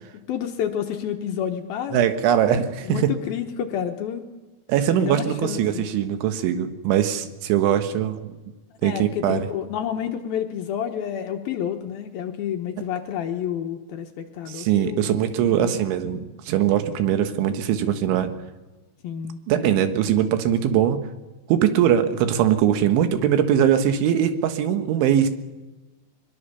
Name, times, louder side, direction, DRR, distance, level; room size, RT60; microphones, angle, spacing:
voice 1, 0.3-2.0 2.8-4.3 4.9-5.9 8.8-15.1 15.5-16.2 19.0-20.1, left 9 dB, 70° left, 5 dB, 2.5 m, -30 dB
voice 2, 1.9-3.1 4.7-8.3 8.8-9.4 14.5-18.3 19.5-21.0 21.5-25.3, right 10 dB, 85° right, 8 dB, 3.9 m, -21 dB
22.5 x 21.5 x 6.9 m, 1.2 s
omnidirectional pair, 5.3 m